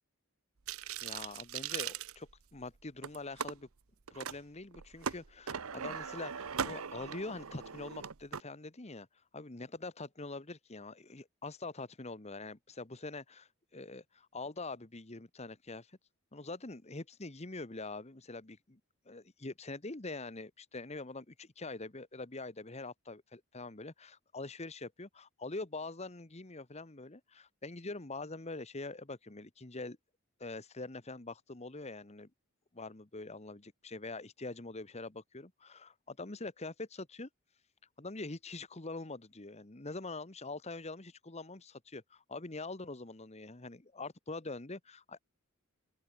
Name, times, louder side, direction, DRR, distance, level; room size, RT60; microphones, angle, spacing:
sound 1, 0.7-2.6 3.0-3.5 4.1-4.4 4.7-8.4, right 7 dB, 75° right, 0.9 m, -40 dB
voice 1, 1.0-3.7 4.1-9.1 9.3-15.9 16.3-18.8 19.0-30.0 30.4-32.3 32.7-37.3 38.0-45.2, left 3 dB, 30° left, 1.3 m, -44 dB
open air
head